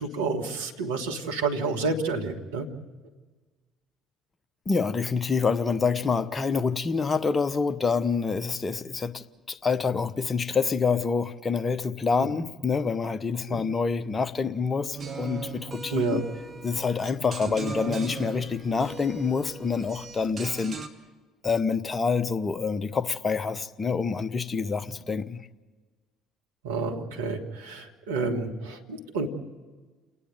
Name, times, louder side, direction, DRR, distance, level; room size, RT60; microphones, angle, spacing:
voice 1, 0.0-2.7 12.2-12.3 13.5-13.6 15.9-16.2 26.6-29.3, right 3 dB, 75° right, 1.8 m, -29 dB
voice 2, 4.7-16.2 16.6-20.8 21.4-25.4, left 5 dB, 30° left, 1.0 m, -27 dB
sound 1, 15.0-20.9, right 4 dB, 35° right, 1.8 m, -38 dB
29.0 x 9.9 x 9.3 m
figure-of-eight pair, 55°, 0 cm